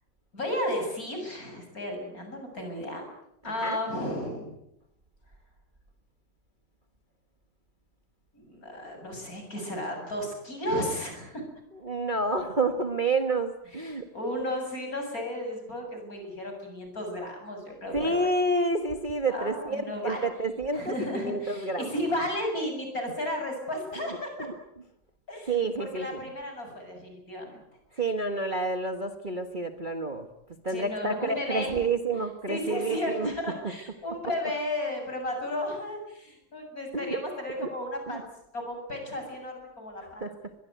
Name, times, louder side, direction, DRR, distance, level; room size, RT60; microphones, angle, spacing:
voice 1, 0.3-3.0 3.4-4.5 8.3-11.4 13.7-18.3 19.3-20.2 20.7-24.5 25.3-27.6 27.9-28.0 30.7-31.8 32.5-40.3, left 1 dB, 45° left, 3 dB, 8.1 m, -34 dB
voice 2, 3.4-3.8 11.8-14.1 17.9-21.9 25.5-26.2 28.0-30.3 30.6-33.3 36.9-37.2 37.5-37.7 38.1-38.2 40.0-40.3, right 2 dB, 25° right, 6 dB, 1.6 m, -29 dB
23.5 x 21.5 x 9.4 m, 0.82 s
omnidirectional pair, 2.1 m